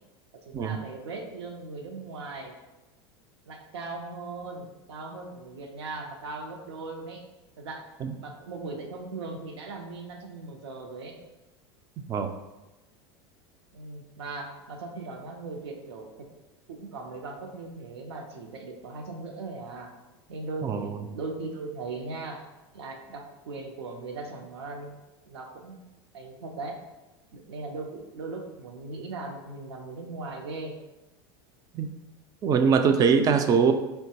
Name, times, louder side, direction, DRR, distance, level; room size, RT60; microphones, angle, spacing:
voice 1, 0.4-2.6 3.5-7.3 7.6-7.9 8.2-11.2 13.7-16.1 16.7-20.0 20.3-22.5 22.7-24.9 25.2-25.7 26.1-26.8 27.3-30.8, right 3 dB, 90° right, 3 dB, 0.6 m, -38 dB
voice 2, 20.6-21.0 31.7-31.9 32.4-33.7, right 6 dB, 30° right, 7 dB, 0.3 m, -22 dB
4.4 x 2.2 x 2.8 m, 1.0 s
supercardioid pair, 115°, 13 cm